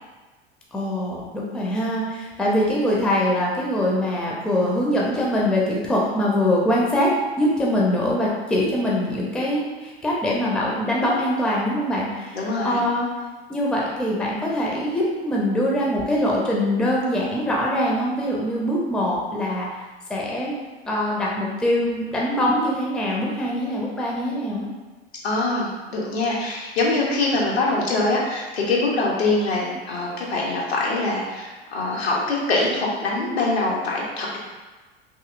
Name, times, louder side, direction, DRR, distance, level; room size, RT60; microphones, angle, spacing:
voice 1, 0.7-13.1 13.5-19.8 20.1-20.5 20.9-24.7, left 1 dB, 5° left, -4 dB, 0.4 m, -23 dB
voice 2, 12.3-12.8 25.2-34.4, left 2 dB, 75° left, -3 dB, 0.8 m, -23 dB
2.8 x 2.7 x 2.4 m, 1.3 s
figure-of-eight pair, 80°, 32 cm